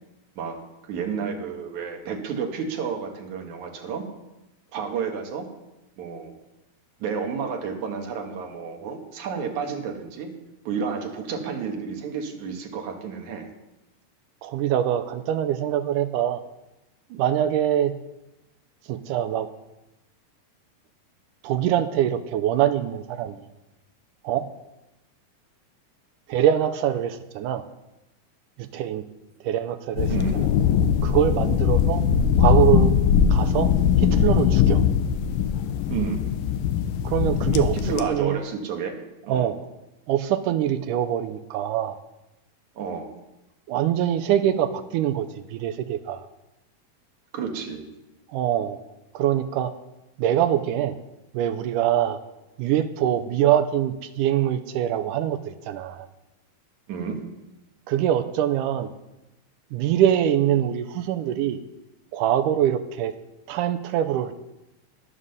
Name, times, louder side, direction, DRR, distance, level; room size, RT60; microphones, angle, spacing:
voice 1, 0.4-4.1 4.7-5.5 6.0-6.3 7.0-10.3 10.7-13.5 30.1-30.4 35.9-36.2 37.7-39.0 39.3-39.5 42.8-43.1 47.3-47.8 56.9-57.2, right 6 dB, 65° right, 3 dB, 2.6 m, -31 dB
voice 2, 14.4-16.4 17.1-17.9 18.9-19.5 21.4-23.5 24.2-24.5 26.3-27.6 28.7-29.0 29.4-30.4 31.0-32.0 32.4-33.0 33.3-33.7 34.0-34.8 37.0-37.8 38.1-38.4 39.3-39.6 40.1-42.0 43.7-46.2 48.3-48.8 49.1-49.7 50.2-50.9 51.3-52.2 52.6-56.1 57.9-58.9 59.7-61.6 62.1-63.1 63.5-64.3, right 11 dB, 80° right, 9 dB, 2.0 m, -23 dB
sound 1, 30.0-38.0, left 8 dB, 80° left, 2.4 m, -21 dB
11.0 x 7.4 x 6.7 m, 0.97 s
omnidirectional pair, 4.0 m